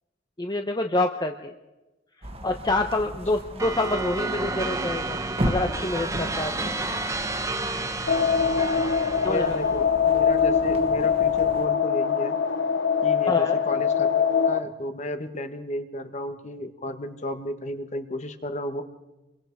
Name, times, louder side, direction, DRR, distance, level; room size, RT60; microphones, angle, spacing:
voice 1, 0.4-1.5 2.4-5.2 5.4-6.7 9.2-9.6 13.3-13.6, left 2 dB, 25° left, 4 dB, 0.9 m, -27 dB
sound 1, 2.2-11.7, right 1 dB, 30° right, 1.7 m, -36 dB
sound 2, 3.6-9.8, right 2 dB, 15° right, 1.3 m, -31 dB
sound 3, 8.1-14.6, left 6 dB, 70° left, 1.1 m, -23 dB
voice 2, 9.3-12.4 13.0-18.8, left 1 dB, 40° left, 7 dB, 1.6 m, -33 dB
28.0 x 23.0 x 4.7 m, 1.1 s
head